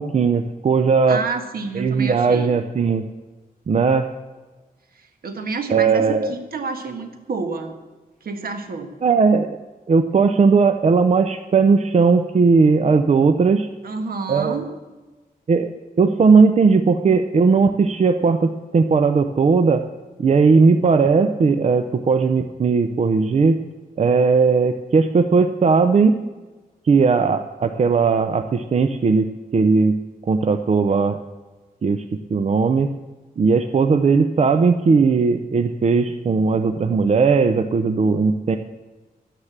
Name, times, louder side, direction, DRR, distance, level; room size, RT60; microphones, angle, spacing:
voice 1, 0.0-1.2 1.8-3.1 3.7-4.1 5.7-6.3 9.0-9.6 9.9-13.7 14.3-14.6 15.5-15.7 16.0-19.8 20.2-23.6 24.0-26.2 26.8-30.0 30.2-31.2 31.8-32.9 33.4-38.6, right 4 dB, 45° right, 8 dB, 0.6 m, -17 dB
voice 2, 1.1-2.5 4.9-7.8 8.2-8.9 13.8-14.7, right 4 dB, 75° right, 5 dB, 1.6 m, -29 dB
11.5 x 9.8 x 7.3 m, 1.2 s
wide cardioid pair, 165°, 15 cm